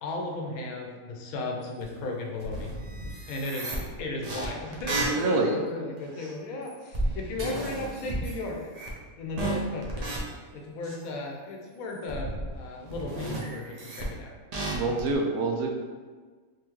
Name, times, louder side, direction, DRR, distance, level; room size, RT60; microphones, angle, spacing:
voice 1, 0.0-2.7 3.3-8.6 9.2-10.1 10.5-14.3, left 2 dB, 85° left, 0 dB, 1.1 m, -35 dB
sound 1, 1.8-1.9 2.4-5.6 6.1-6.3 6.7-8.4 8.7-9.1 9.4-10.2 10.8-11.1 11.9-12.6 12.9-14.1 14.5-15.1, right 2 dB, 55° right, 0.4 m, -33 dB
voice 2, 5.1-5.5 14.7-15.7, right 3 dB, 85° right, 1 dB, 1.1 m, -26 dB
3.6 x 2.7 x 3.0 m, 1.4 s
omnidirectional pair, 1.5 m